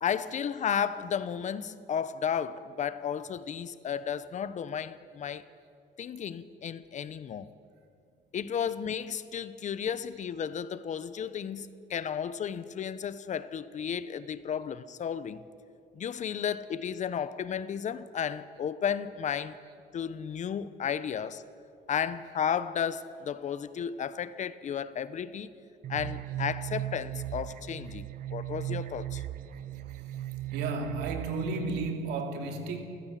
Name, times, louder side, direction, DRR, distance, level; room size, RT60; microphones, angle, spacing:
voice 1, 0.0-5.5 6.0-7.5 8.3-15.4 15.9-19.6 19.9-21.4 21.9-25.5 25.9-29.2, left 8 dB, 45° left, 0.9 m, -33 dB
sound 1, 25.8-31.9, right 13 dB, 55° right, 0.6 m, -37 dB
voice 2, 30.5-32.8, right 3 dB, 90° right, 3.0 m, -33 dB
29.0 x 14.5 x 7.5 m
cardioid pair, 110°, 17 cm